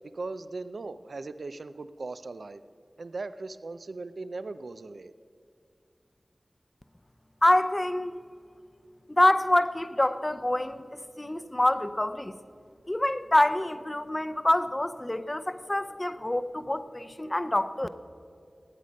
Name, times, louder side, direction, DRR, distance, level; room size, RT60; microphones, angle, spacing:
voice 1, 0.0-2.6 3.0-5.1, right 3 dB, 85° right, 13 dB, 0.4 m, -38 dB
voice 2, 7.4-8.1 9.1-12.3 12.9-17.9, left 1 dB, 25° left, 12 dB, 0.6 m, -26 dB
19.0 x 8.3 x 5.3 m, 2.3 s
wide cardioid pair, 55°, 0 cm